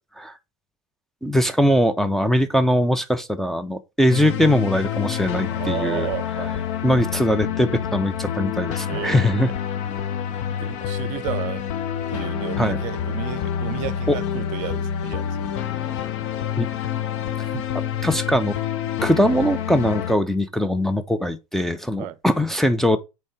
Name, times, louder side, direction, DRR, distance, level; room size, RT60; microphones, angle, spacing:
voice 1, 1.2-6.1 6.8-9.5 12.6-12.8 14.1-14.2 16.6-16.7 18.0-18.6 19.0-23.0, equal, ahead, 0.6 m, -21 dB
sound 1, 4.1-20.1, left 9 dB, 55° left, 0.9 m, -27 dB
voice 2, 5.5-6.6 8.9-9.5 10.5-11.7 12.1-15.5 17.4-17.7 22.0-22.2 22.5-22.6, right 15 dB, 45° right, 0.6 m, -33 dB
5.3 x 4.5 x 4.8 m
hypercardioid pair, 90°, 17 cm